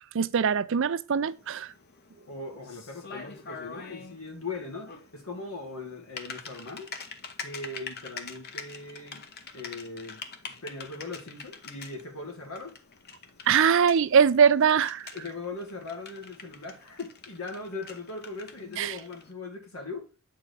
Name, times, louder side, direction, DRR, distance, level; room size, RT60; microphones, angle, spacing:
voice 1, 0.1-1.7 13.5-15.1 18.8-18.9, right 7 dB, 60° right, 0.5 m, -22 dB
Typing, 1.2-19.3, left 5 dB, 50° left, 0.9 m, -45 dB
voice 2, 2.3-6.9 7.4-9.2 9.5-12.7 15.1-20.1, left 3 dB, 80° left, 2.0 m, -39 dB
8.0 x 4.7 x 3.9 m
head